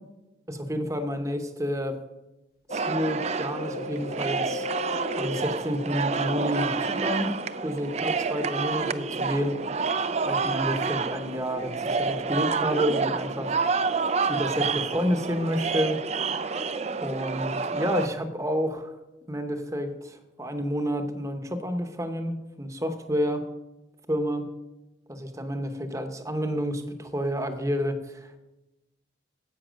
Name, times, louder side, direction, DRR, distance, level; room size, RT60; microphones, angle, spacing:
voice 1, 0.5-2.0 2.7-4.7 5.1-7.3 7.6-9.6 10.2-13.5 14.3-16.0 16.3-16.6 17.0-18.9 19.3-23.4 24.1-24.5 25.1-28.4, equal, 15° right, 7 dB, 0.9 m, -29 dB
Mallet percussion, 2.7-12.3, left 4 dB, 55° left, 1.0 m, -42 dB
sound 1, 2.7-18.1, right 4 dB, 35° right, 0.4 m, -28 dB
10.0 x 8.3 x 6.3 m, 1.0 s
head